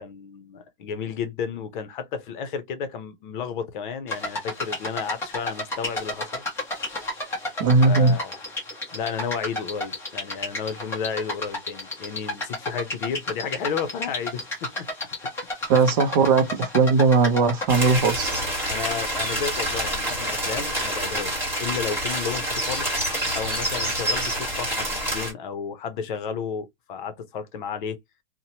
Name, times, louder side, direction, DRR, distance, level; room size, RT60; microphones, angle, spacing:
voice 1, 0.0-6.4 7.9-8.4 8.9-14.9 18.7-22.9 23.3-28.0, left 6 dB, 60° left, 0.7 m, -32 dB
sound 1, 4.1-17.7, left 2 dB, 10° left, 0.8 m, -32 dB
voice 2, 7.6-8.2 15.7-18.5, right 4 dB, 35° right, 0.5 m, -19 dB
sound 2, 17.7-25.3, right 1 dB, 10° right, 1.3 m, -27 dB
2.8 x 2.1 x 2.8 m
supercardioid pair, 155°, 29 cm